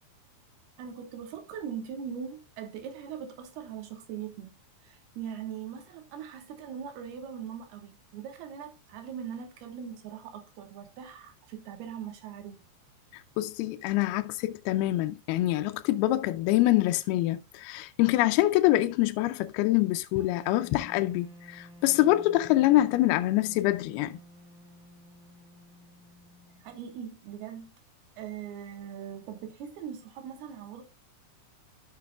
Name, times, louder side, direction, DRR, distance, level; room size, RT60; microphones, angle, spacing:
voice 1, 0.8-4.6 4.8-12.7 26.6-27.7 28.2-30.8, right 8 dB, 80° right, 3.2 m, -41 dB
voice 2, 13.4-24.2, left 16 dB, 80° left, 2.4 m, -25 dB
Wind instrument woodwind instrument, 20.1-27.1, left 1 dB, 50° right, 3.0 m, -52 dB
13.0 x 6.0 x 2.3 m
omnidirectional pair, 4.6 m